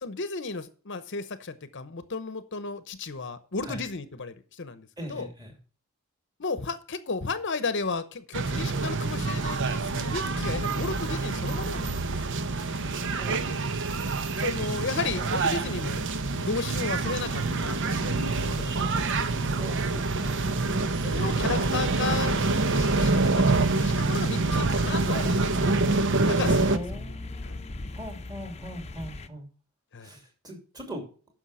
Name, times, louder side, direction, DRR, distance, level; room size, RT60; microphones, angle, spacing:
voice 1, 0.0-5.3 6.4-12.2 12.4-12.6 14.4-16.0 16.4-18.2 18.6-19.1 21.0-22.4 22.8-23.4 23.7-25.8 26.3-27.1 27.4-27.5 29.9-30.1, left 4 dB, 55° left, 12 dB, 0.8 m, -34 dB
voice 2, 5.0-5.6 13.1-13.5 14.4-14.5 15.2-15.4 19.4-21.0 26.7-29.5 30.0-31.1, equal, 20° right, 3 dB, 2.9 m, -41 dB
sound 1, 8.3-26.8, right 3 dB, 55° right, 0.9 m, -26 dB
sound 2, 21.3-29.3, left 2 dB, 30° left, 0.7 m, -39 dB
9.9 x 6.3 x 6.2 m, 0.38 s
head